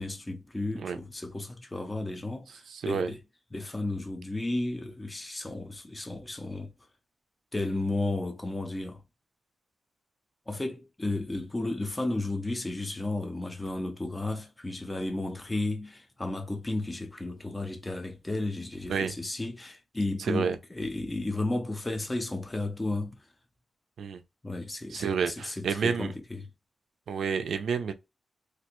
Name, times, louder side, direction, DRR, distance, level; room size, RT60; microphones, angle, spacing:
voice 1, 0.0-3.2 3.5-6.7 7.5-9.0 10.5-23.2 24.4-26.5, left 2 dB, 15° left, 0.4 m, -33 dB
voice 2, 2.7-3.1 18.9-19.1 20.2-20.6 24.0-24.2 24.9-26.1 27.1-27.9, right 6 dB, 80° right, 0.4 m, -29 dB
3.1 x 2.5 x 3.0 m
wide cardioid pair, 170°, 0 cm